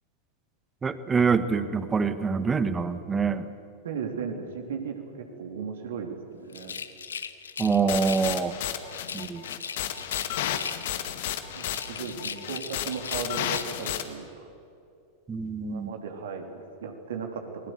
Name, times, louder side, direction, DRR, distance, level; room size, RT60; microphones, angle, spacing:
voice 1, 0.8-3.5 7.6-8.5 9.1-9.4 15.3-15.9, right 5 dB, 15° right, 12 dB, 1.5 m, -25 dB
voice 2, 3.8-5.0 5.4-6.7 11.6-14.5 15.6-17.4, right 6 dB, 60° right, 3 dB, 3.6 m, -36 dB
Rattle, 6.5-8.4 8.9-11.1 11.5-13.9, left 6 dB, 70° left, 1.3 m, -39 dB
sound 1, 7.9-14.0, left 11 dB, 55° left, 2.0 m, -32 dB
29.5 x 21.5 x 8.0 m, 2.6 s
figure-of-eight pair, 90°, 0 cm